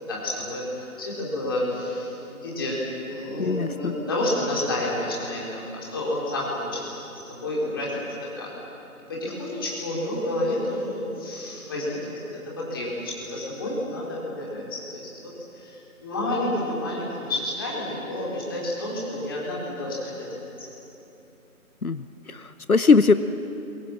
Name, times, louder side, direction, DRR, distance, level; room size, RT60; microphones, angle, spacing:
voice 1, 0.0-2.8 3.1-8.0 8.3-8.5 9.1-20.4, left 1 dB, 15° left, -5 dB, 3.8 m, -30 dB
voice 2, 3.4-3.9 21.8-23.1, left 4 dB, 75° left, 12 dB, 0.9 m, -20 dB
27.5 x 22.5 x 7.4 m, 2.9 s
figure-of-eight pair, 160°, 44 cm